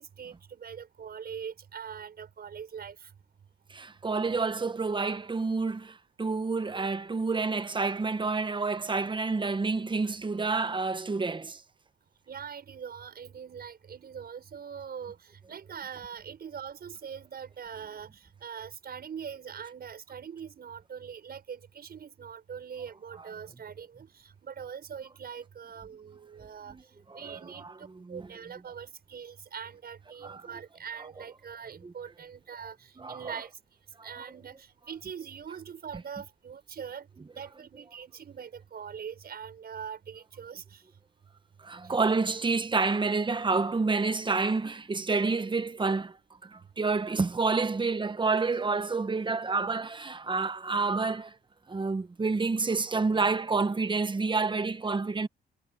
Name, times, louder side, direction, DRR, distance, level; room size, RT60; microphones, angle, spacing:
voice 1, 0.0-3.1 12.3-33.5 34.0-37.1 37.4-40.8 41.8-41.9, right 7 dB, 50° right, 6.2 m, -42 dB
voice 2, 3.7-11.6 26.7-26.8 27.1-28.3 30.2-30.4 33.0-33.3 34.0-34.1 41.6-46.2 46.4-51.4 51.7-55.3, right 4 dB, 25° right, 1.3 m, -29 dB
cardioid pair, 90°, 20 cm